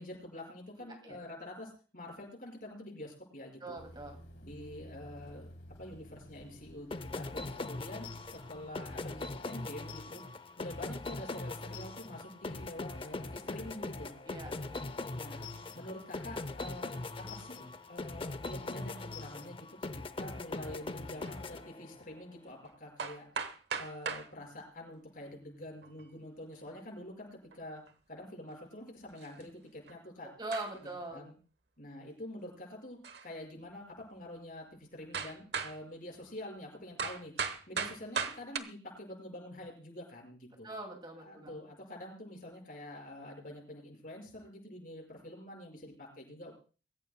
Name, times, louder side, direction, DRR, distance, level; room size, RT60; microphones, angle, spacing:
voice 1, 0.0-3.8 4.4-5.5 5.8-10.2 10.6-14.1 15.1-15.5 15.7-19.7 20.2-23.3 23.8-27.3 27.5-27.8 28.1-30.3 31.1-31.4 31.8-37.3 37.7-40.7 41.2-46.5, left 1 dB, 50° left, 1 dB, 5.8 m, -46 dB
voice 2, 0.8-1.2 3.6-4.2 14.3-14.8 30.4-31.2 40.6-41.6, right 2 dB, 25° right, 4 dB, 2.3 m, -42 dB
sound 1, 3.7-8.7, equal, 75° left, 3.1 m, -53 dB
sound 2, 6.9-22.2, left 2 dB, 30° left, 0.6 m, -41 dB
sound 3, 21.2-21.4 22.6-22.7 23.0-24.3 25.6-26.1 27.5-27.6 27.9-28.0 29.2-29.4 29.9-30.0 30.5-30.9 33.0-33.3 34.0-34.1 35.1-35.8 37.0-38.6, right 5 dB, 65° right, 1.1 m, -37 dB
24.0 x 14.5 x 2.2 m, 0.36 s
head